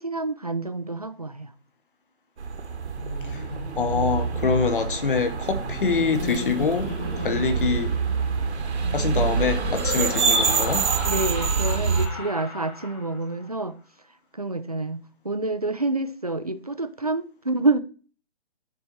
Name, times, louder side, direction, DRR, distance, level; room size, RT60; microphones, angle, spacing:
voice 1, 0.0-1.5 7.2-7.5 11.0-13.8 14.3-17.8, right 2 dB, 35° right, 0.4 m, -28 dB
sound 1, 2.4-12.1, right 5 dB, 80° right, 1.4 m, -26 dB
Laughter, 2.9-13.4, left 2 dB, 15° left, 1.6 m, -35 dB
voice 2, 3.8-6.9 7.2-7.9 8.9-10.9, left 5 dB, 50° left, 1.2 m, -25 dB
9.6 x 4.1 x 4.6 m
hypercardioid pair, 180°, 33 cm